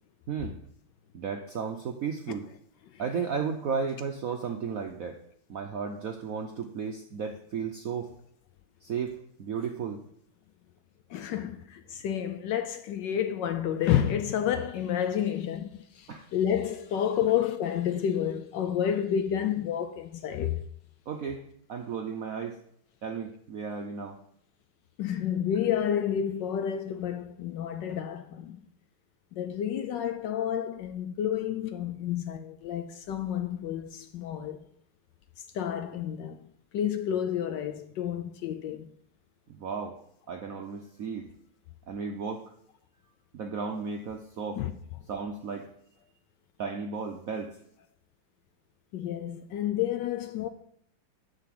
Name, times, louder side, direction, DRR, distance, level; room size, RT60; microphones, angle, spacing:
voice 1, 1.1-2.5 3.0-5.2 5.5-8.1 8.8-10.0 16.1-16.3 21.1-21.4 21.7-22.6 23.0-24.2 39.5-40.0 40.3-41.3 41.9-42.5 43.3-44.6 45.1-45.7 46.6-47.6, right 6 dB, 70° right, 0.8 m, -34 dB
voice 2, 11.1-20.6 25.0-28.6 29.3-34.6 35.5-36.4 36.7-38.9 44.6-44.7 48.9-50.5, left 9 dB, 70° left, 1.1 m, -30 dB
10.5 x 4.0 x 7.6 m
omnidirectional pair, 2.3 m